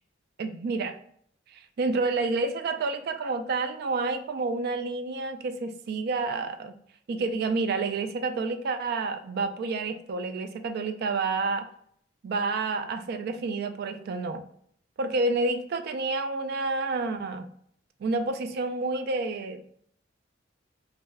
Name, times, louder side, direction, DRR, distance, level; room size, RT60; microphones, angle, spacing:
voice 1, 0.4-1.0 1.5-6.7 7.1-11.7 12.2-14.4 15.0-17.5 18.0-19.6, right 3 dB, 55° right, 9 dB, 0.3 m, -29 dB
2.6 x 2.3 x 3.1 m, 0.64 s
head